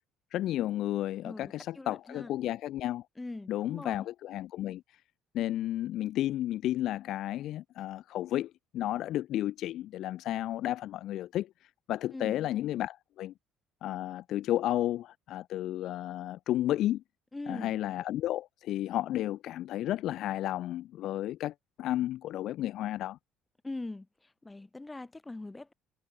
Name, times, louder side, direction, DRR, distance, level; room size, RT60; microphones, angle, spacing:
voice 1, 0.3-3.0 3.5-4.8 5.3-11.5 11.9-13.3 13.8-17.0 17.5-23.2, left 13 dB, 55° left, 0.3 m, -32 dB
voice 2, 1.2-2.3 3.2-4.1 12.1-12.5 17.3-17.8 23.6-24.1 24.4-25.7, left 2 dB, 10° left, 1.2 m, -42 dB
cardioid pair, 160°, 0 cm